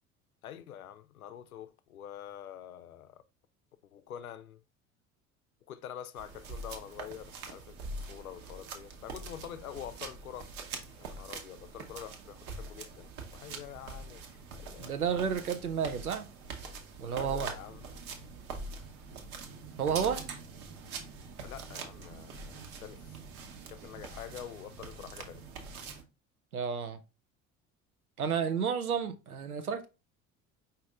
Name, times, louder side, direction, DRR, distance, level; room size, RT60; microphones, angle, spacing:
voice 1, 0.4-3.2 3.9-4.6 5.7-10.5 11.0-15.5 17.1-17.8 21.4-23.2 23.7-25.4, left 10 dB, 80° left, 0.5 m, -46 dB
sound 1, 6.2-26.0, right 4 dB, 50° right, 1.0 m, -44 dB
voice 2, 14.8-16.3 17.0-17.5 19.8-20.2 26.5-27.0 28.2-29.9, right 7 dB, 85° right, 0.7 m, -31 dB
5.1 x 2.7 x 3.6 m
figure-of-eight pair, 60°, 42 cm